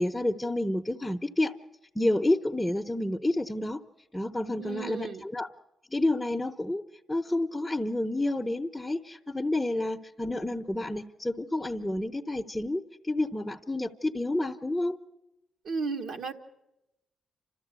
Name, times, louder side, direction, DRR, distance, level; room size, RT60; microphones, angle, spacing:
voice 1, 0.0-1.5 1.9-3.8 4.1-5.5 5.9-6.8 7.1-15.0, left 1 dB, 10° left, 2 dB, 0.9 m, -29 dB
voice 2, 4.5-5.2 15.6-16.3, right 4 dB, 75° right, 4 dB, 1.5 m, -34 dB
29.0 x 13.0 x 8.2 m, 0.93 s
supercardioid pair, 55°, 0 cm